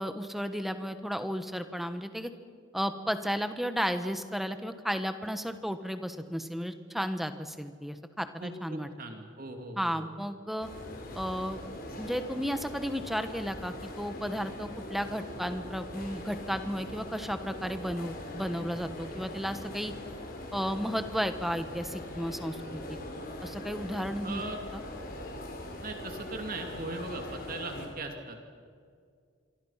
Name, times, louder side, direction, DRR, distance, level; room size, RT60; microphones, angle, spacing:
voice 1, 0.0-2.3 2.7-8.9 9.8-10.7 11.1-11.6 12.0-19.9 20.5-23.0 23.4-24.4 24.7-24.8, equal, ahead, 9 dB, 1.3 m, -33 dB
voice 2, 8.4-10.1 24.2-24.6 25.8-28.5, right 2 dB, 45° right, 4 dB, 2.6 m, -39 dB
sound 1, 10.6-27.9, left 1 dB, 45° left, 4.5 m, -42 dB
26.5 x 24.5 x 5.8 m, 2.1 s
head